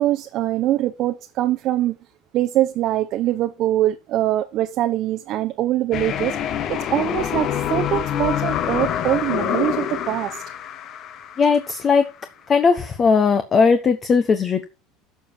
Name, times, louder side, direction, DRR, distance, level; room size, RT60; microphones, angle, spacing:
voice 1, 0.0-2.0 2.3-10.4, right 13 dB, 45° right, 0.9 m, -23 dB
sound 1, 5.9-11.9, left 9 dB, 40° left, 1.2 m, -26 dB
voice 2, 11.4-12.0 12.5-14.7, left 5 dB, 25° left, 1.2 m, -18 dB
12.5 x 7.1 x 4.4 m
cardioid pair, 155°, 0 cm